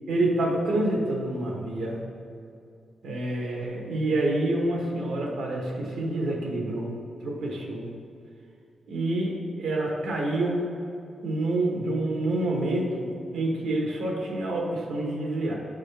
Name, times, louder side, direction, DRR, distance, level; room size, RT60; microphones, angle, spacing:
voice 1, 0.1-2.0 3.0-7.9 8.9-10.7 11.2-15.6, right 1 dB, 90° right, -1 dB, 1.0 m, -27 dB
8.7 x 3.7 x 3.4 m, 2.5 s
wide cardioid pair, 165°, 0 cm